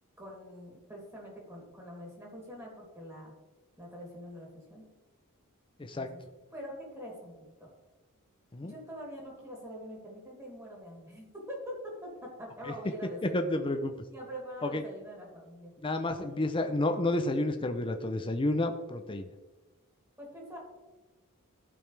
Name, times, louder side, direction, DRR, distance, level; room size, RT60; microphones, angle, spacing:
voice 1, 0.2-3.3 3.8-4.9 5.9-6.0 6.5-7.7 8.6-13.6 14.1-15.7 16.1-16.4 20.2-20.6, equal, 15° right, -3 dB, 2.9 m, -44 dB
voice 2, 5.8-6.1 8.5-8.7 12.7-12.8 13.2-14.0 14.6-14.8 15.8-19.3, left 2 dB, 25° left, 6 dB, 0.5 m, -30 dB
15.5 x 5.3 x 3.4 m, 1.2 s
head